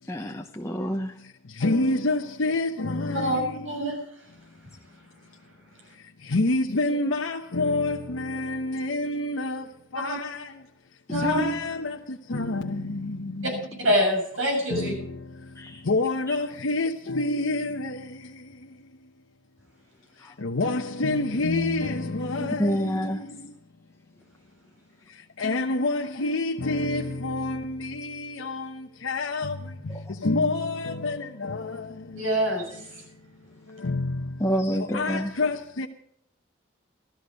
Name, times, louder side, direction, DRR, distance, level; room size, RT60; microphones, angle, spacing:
voice 1, 0.1-1.1 15.6-15.7 22.6-23.2 34.4-35.3, equal, 15° left, 0.8 m, -27 dB
voice 2, 1.2-3.9 6.2-10.6 11.1-13.6 14.7-18.9 20.4-23.5 25.1-32.4 33.7-35.9, left 2 dB, 85° left, 1.0 m, -28 dB
voice 3, 3.1-4.0 10.0-10.2 11.1-11.4 13.4-13.5 13.8-14.9 22.4-22.5 32.1-32.8, equal, 85° right, 7.0 m, -25 dB
14.5 x 13.0 x 5.2 m
head